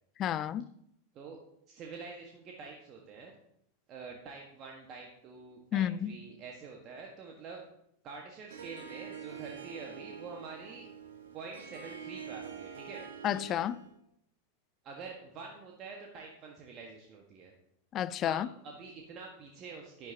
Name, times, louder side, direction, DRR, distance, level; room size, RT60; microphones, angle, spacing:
voice 1, 0.2-0.7 5.7-6.1 13.2-13.8 17.9-18.5, left 11 dB, 30° left, 0.4 m, -31 dB
voice 2, 1.7-3.3 3.9-7.6 8.0-10.9 11.3-13.0 14.8-17.5 18.2-20.1, right 4 dB, 35° right, 1.5 m, -46 dB
Harp, 8.5-14.0, right 7 dB, 65° right, 1.3 m, -46 dB
11.0 x 10.5 x 2.9 m
figure-of-eight pair, 90°, 0 cm